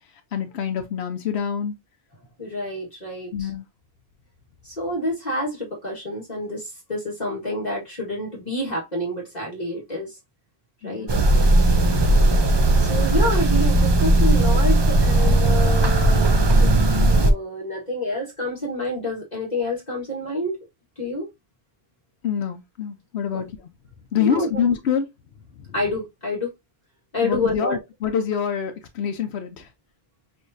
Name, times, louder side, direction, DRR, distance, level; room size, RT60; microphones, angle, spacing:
voice 1, 0.3-1.7 3.3-3.7 10.8-11.2 22.2-23.7 24.1-25.1 25.6-25.7 27.2-29.7, left 8 dB, 85° left, 1.0 m, -26 dB
voice 2, 2.4-3.5 4.6-10.2 10.8-11.1 12.8-20.6 21.0-21.3 23.3-23.4 24.2-24.5 25.7-26.5 27.1-27.8, left 1 dB, 40° left, 1.8 m, -28 dB
sound 1, 11.1-17.3, right 2 dB, 30° right, 0.5 m, -17 dB
6.5 x 2.6 x 2.6 m
omnidirectional pair, 1.1 m